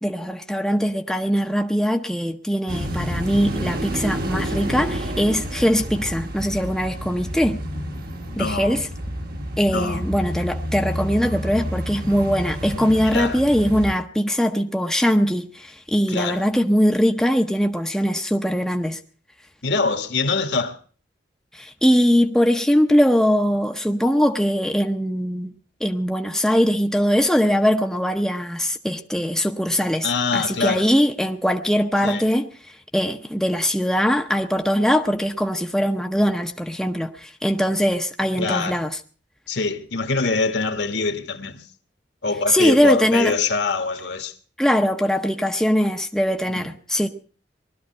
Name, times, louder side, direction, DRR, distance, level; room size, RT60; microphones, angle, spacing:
voice 1, 0.0-7.6 8.4-8.9 9.6-19.0 21.5-25.5 25.8-32.5 32.9-39.0 42.5-43.3 44.6-47.1, equal, 5° left, 0.7 m, -21 dB
sound 1, 2.7-13.9, equal, 55° right, 1.5 m, -29 dB
voice 2, 8.3-8.8 9.7-10.1 13.0-13.4 16.1-16.4 19.6-20.8 30.0-30.9 32.0-32.3 38.4-38.8 39.5-41.6 42.2-44.3 46.5-46.7, left 4 dB, 65° left, 1.5 m, -24 dB
20.0 x 13.0 x 4.3 m
head